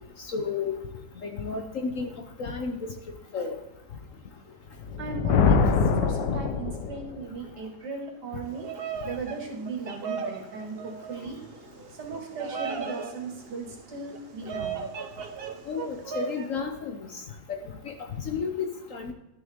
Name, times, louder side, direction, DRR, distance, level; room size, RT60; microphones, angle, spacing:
voice 1, 0.3-0.8 1.2-2.9 3.3-3.6 15.7-17.1 17.5-17.6 17.8-19.1, left 5 dB, 55° left, 5 dB, 1.0 m, -32 dB
Thunder, 4.8-7.2, left 5 dB, 75° left, 1.4 m, -24 dB
voice 2, 5.0-8.7 9.0-11.6 11.9-14.8, right 4 dB, 70° right, 1 dB, 2.4 m, -37 dB
Bird vocalization bird call bird song, 8.4-16.5, right 5 dB, 50° right, 0.7 m, -37 dB
12.5 x 6.5 x 3.6 m, 0.94 s
omnidirectional pair, 1.9 m